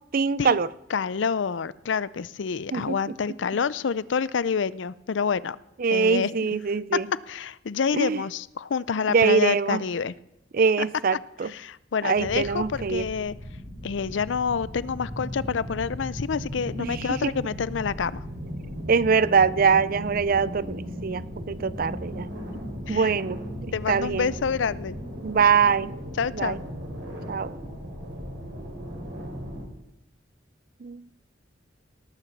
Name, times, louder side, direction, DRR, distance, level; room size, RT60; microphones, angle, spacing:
voice 1, 0.1-0.7 2.7-3.0 5.8-7.1 7.9-8.2 9.1-9.8 10.5-11.5 12.0-13.1 16.8-17.3 18.9-22.3 22.9-24.3 25.2-25.9 26.3-26.6 27.3-27.5 30.8-31.0, right 5 dB, 50° right, 19 dB, 0.5 m, -23 dB
voice 2, 0.9-5.6 5.9-6.3 7.3-10.1 10.8-10.9 11.4-13.3 13.8-18.2 22.9-23.1 23.7-25.0 26.2-26.6, left 6 dB, 80° left, 19 dB, 0.5 m, -28 dB
sound 1, 12.1-29.6, equal, 65° right, 4.5 m, -37 dB
18.5 x 6.9 x 7.3 m, 0.87 s
head